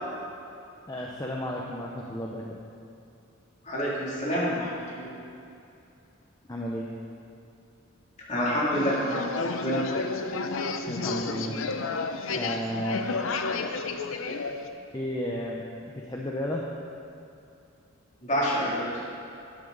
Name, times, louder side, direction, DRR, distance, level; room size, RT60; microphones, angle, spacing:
voice 1, 0.9-2.6 6.5-6.9 10.9-11.6 12.3-13.0 14.9-16.7, equal, 20° left, -2 dB, 0.8 m, -33 dB
voice 2, 3.6-5.1 8.3-9.2 9.6-10.0 18.2-19.0, equal, 35° left, -6 dB, 3.0 m, -28 dB
sound 1, 8.7-14.7, left 4 dB, 80° left, 0.7 m, -31 dB
12.0 x 11.0 x 4.0 m, 2.6 s
head